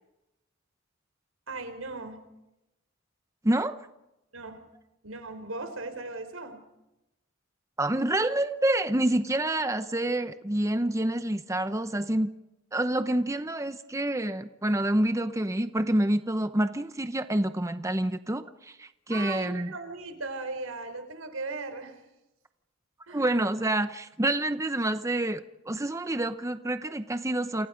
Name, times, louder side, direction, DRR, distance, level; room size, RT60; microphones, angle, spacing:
voice 1, 1.5-2.2 4.3-4.6 5.0-6.6 19.1-22.0 23.1-23.3, right 3 dB, 90° right, 9 dB, 4.5 m, -37 dB
voice 2, 3.4-3.8 7.8-12.3 12.7-19.7 23.1-27.7, right 1 dB, 15° right, 10 dB, 0.8 m, -27 dB
29.0 x 28.5 x 5.2 m, 0.95 s
head